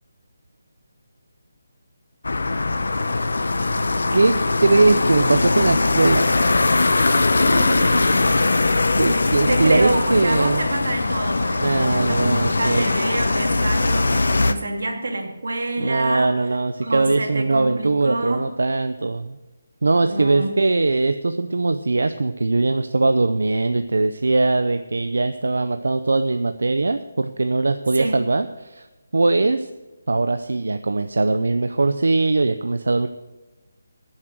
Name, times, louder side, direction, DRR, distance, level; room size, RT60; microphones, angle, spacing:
sound 1, 2.2-14.5, left 3 dB, 75° left, 0.9 m, -20 dB
voice 1, 4.6-6.3 9.0-10.7 11.6-12.8 15.8-19.4 19.8-28.9 29.1-29.7 30.1-33.1, right 3 dB, 90° right, 9 dB, 0.6 m, -20 dB
voice 2, 7.4-8.3 9.5-16.4 16.8-18.5 20.0-20.6 27.9-28.2, right 2 dB, 70° right, 2 dB, 2.6 m, -27 dB
13.0 x 7.4 x 6.3 m, 1.1 s
hypercardioid pair, 180°, 0 cm